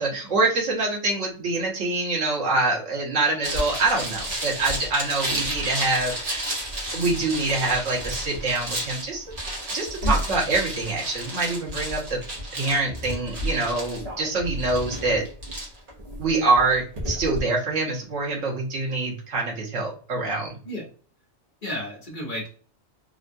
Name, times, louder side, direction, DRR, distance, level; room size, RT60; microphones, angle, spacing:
voice 1, 0.0-6.5 6.9-9.4 9.7-12.2 12.5-15.2 16.2-20.5, right 3 dB, 80° right, -1 dB, 1.3 m, -25 dB
sound 1, 3.4-17.4, right 1 dB, 45° right, 1.1 m, -31 dB
voice 2, 21.6-22.5, left 2 dB, 45° left, -3 dB, 1.3 m, -32 dB
3.5 x 2.2 x 2.5 m, 0.41 s
omnidirectional pair, 1.2 m